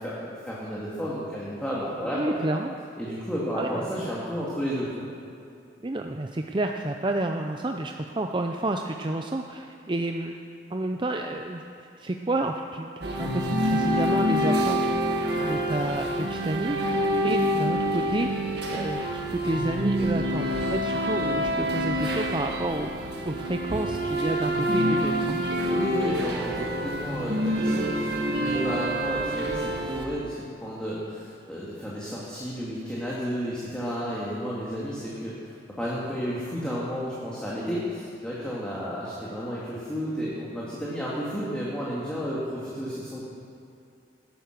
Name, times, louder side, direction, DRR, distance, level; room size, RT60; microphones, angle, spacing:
voice 1, 0.0-2.4 3.0-5.0 25.7-43.2, equal, 5° left, -7 dB, 2.2 m, -32 dB
voice 2, 2.0-2.7 3.5-3.9 5.8-10.4 10.7-25.4, right 2 dB, 25° right, 3 dB, 0.6 m, -30 dB
sound 1, 13.0-30.0, equal, 65° right, 1.7 m, -27 dB
18.0 x 10.5 x 6.6 m, 2.6 s
head